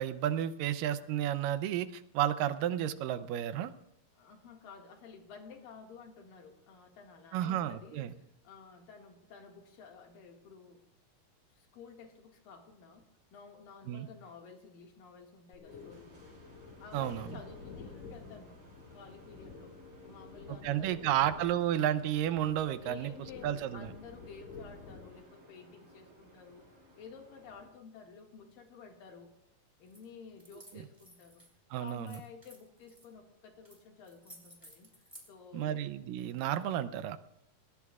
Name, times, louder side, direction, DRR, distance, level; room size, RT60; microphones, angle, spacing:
voice 1, 0.0-3.7 7.3-8.1 13.9-14.1 16.9-17.3 20.6-23.1 23.4-23.9 31.7-32.2 35.5-37.2, right 11 dB, 80° right, 11 dB, 2.3 m, -32 dB
voice 2, 4.1-10.8 11.5-16.4 16.8-18.6 18.9-22.0 22.8-29.3 29.8-31.4 31.8-34.9 35.3-35.8, left 5 dB, 85° left, 2 dB, 3.6 m, -52 dB
sound 1, 15.5-25.2, left 5 dB, 65° left, 2.9 m, -51 dB
sound 2, 15.7-27.7, right 1 dB, 45° right, 6.3 m, -58 dB
sound 3, 29.9-30.1 30.4-31.5 31.9-33.1 33.6-33.8 34.0-35.3, equal, 5° right, 4.5 m, -55 dB
26.5 x 19.0 x 2.4 m, 0.83 s
omnidirectional pair, 3.9 m